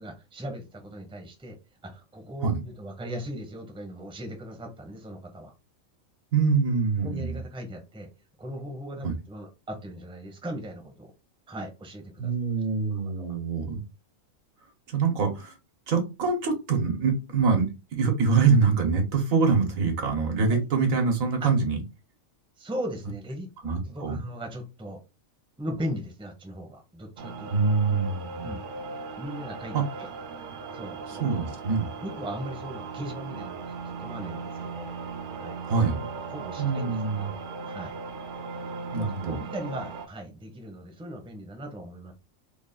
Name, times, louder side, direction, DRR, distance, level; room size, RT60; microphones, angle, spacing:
voice 1, 0.0-1.6 1.8-5.5 6.6-8.1 8.4-11.1 11.5-12.3 12.9-13.4 22.6-23.5 23.8-25.0 25.6-27.6 28.4-28.6 29.2-30.1 30.7-31.3 32.0-34.9 35.4-35.6 36.3-37.3 37.6-38.0 38.9-42.1, equal, 5° right, 0.6 m, -38 dB
voice 2, 6.3-7.4 9.0-9.1 12.2-13.8 14.9-15.5 15.9-21.8 23.6-24.2 27.5-28.5 29.7-29.8 31.2-31.9 35.6-36.1 36.6-37.2 38.9-39.4, right 5 dB, 85° right, 1.4 m, -24 dB
sound 1, 27.2-40.1, right 4 dB, 60° right, 0.5 m, -38 dB
3.5 x 2.4 x 3.8 m
omnidirectional pair, 1.4 m